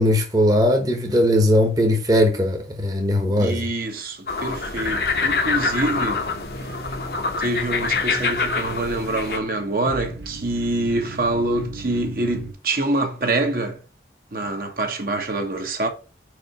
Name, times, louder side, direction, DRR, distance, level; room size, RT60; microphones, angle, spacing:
voice 1, 0.0-3.7, left 1 dB, 20° right, 1.1 m, -19 dB
voice 2, 3.2-6.3 7.4-13.8 14.3-15.9, right 2 dB, 55° right, 1.3 m, -25 dB
sound 1, 4.3-9.4, left 4 dB, 60° left, 1.0 m, -25 dB
sound 2, 4.7-12.5, right 2 dB, 75° right, 1.1 m, -38 dB
4.9 x 4.8 x 5.3 m
head